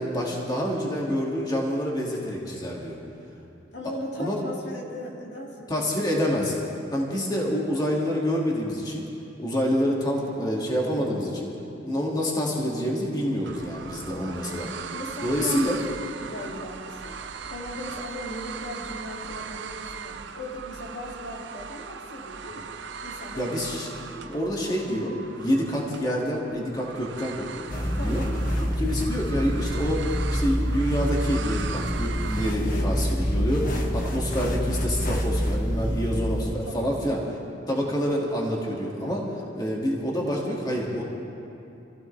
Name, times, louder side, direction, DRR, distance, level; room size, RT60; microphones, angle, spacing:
voice 1, 0.0-3.0 4.2-4.4 5.7-6.5 6.9-9.0 9.4-11.5 11.8-14.7 15.2-15.8 23.4-23.9 24.1-28.2 28.8-37.2 37.7-41.0, equal, 20° left, -3 dB, 2.3 m, -27 dB
voice 2, 3.7-6.3 6.9-7.3 14.9-17.2 17.5-22.7 23.0-23.6 23.9-24.2 27.9-28.3 32.6-33.1 36.1-36.9 37.7-37.9, left 1 dB, 65° left, -2 dB, 2.5 m, -38 dB
sound 1, 13.4-32.5, right 6 dB, 70° right, 0.6 m, -39 dB
sound 2, 27.7-36.5, equal, 50° left, 1.4 m, -27 dB
27.5 x 15.5 x 3.4 m, 2.8 s
head